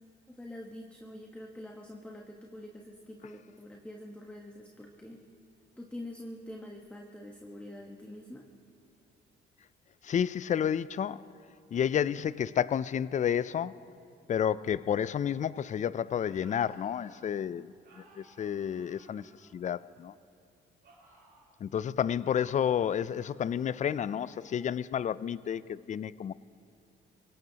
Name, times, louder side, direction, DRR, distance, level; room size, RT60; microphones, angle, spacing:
voice 1, 0.3-5.2 5.8-8.4, left 1 dB, 5° left, 0 dB, 1.3 m, -45 dB
voice 2, 10.0-11.3 11.7-13.8 14.3-17.7 18.0-20.1 21.6-26.3, left 8 dB, 40° left, 18 dB, 0.4 m, -30 dB
sound 1, 15.9-17.3 17.8-20.1 20.8-21.5 22.2-24.7, right 3 dB, 60° right, 4.8 m, -61 dB
24.0 x 17.5 x 2.9 m, 2.6 s
cardioid pair, 90°, 20 cm